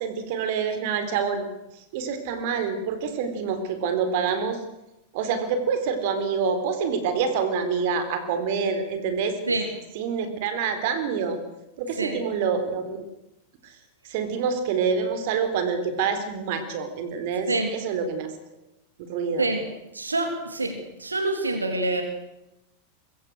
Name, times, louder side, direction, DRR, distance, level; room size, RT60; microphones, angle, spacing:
voice 1, 0.0-1.5 1.9-4.6 5.1-9.3 9.9-11.4 11.8-13.0 13.6-13.7 14.0-18.3 19.1-19.4, right 6 dB, 50° right, 9 dB, 4.0 m, -26 dB
voice 2, 19.9-22.0, right 2 dB, 80° right, 5 dB, 3.4 m, -26 dB
25.5 x 23.0 x 6.4 m, 0.89 s
figure-of-eight pair, 90°, 0 cm